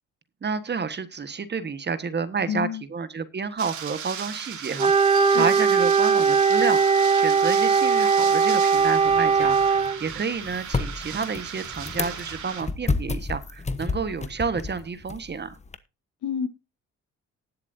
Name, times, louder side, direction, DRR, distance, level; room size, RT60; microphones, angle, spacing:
voice 1, 0.4-15.6, right 5 dB, 35° right, 13 dB, 1.4 m, -30 dB
voice 2, 2.5-2.8 5.3-5.5 16.2-16.5, left 7 dB, 85° left, 10 dB, 1.7 m, -28 dB
sound 1, 3.6-12.6, right 8 dB, 75° right, 2.7 m, -36 dB
Wind instrument woodwind instrument, 4.8-10.0, right 5 dB, 20° right, 1.1 m, -20 dB
sound 2, 8.8-15.8, left 3 dB, 20° left, 1.1 m, -32 dB
19.5 x 7.4 x 2.7 m, 0.28 s
cardioid pair, 90°, 30 cm